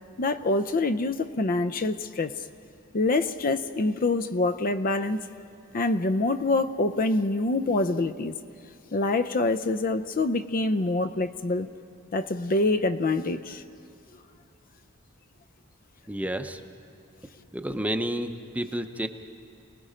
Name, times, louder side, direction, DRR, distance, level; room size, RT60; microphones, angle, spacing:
voice 1, 0.2-2.3 2.9-5.2 5.7-8.3 8.9-11.7 12.1-13.6, left 2 dB, 40° left, 11 dB, 0.5 m, -25 dB
voice 2, 16.1-16.6 17.5-19.1, right 1 dB, 5° right, 7 dB, 0.7 m, -30 dB
28.5 x 19.5 x 5.1 m, 2.7 s
head